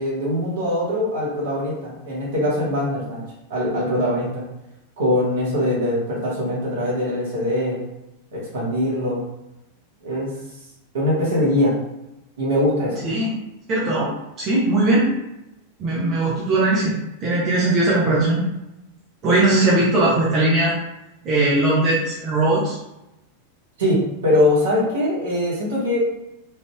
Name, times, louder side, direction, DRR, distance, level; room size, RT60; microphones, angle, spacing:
voice 1, 0.0-3.2 3.5-4.4 5.0-7.8 8.3-9.2 10.0-10.3 10.9-11.8 12.4-13.0 23.8-26.0, left 1 dB, 60° right, -6 dB, 1.3 m, -22 dB
voice 2, 13.7-14.1 14.4-15.1 15.8-16.9 17.2-18.4 19.2-20.7 21.2-22.8, right 2 dB, 30° right, -7 dB, 0.9 m, -19 dB
3.3 x 2.6 x 2.3 m, 0.91 s
figure-of-eight pair, 90°, 0 cm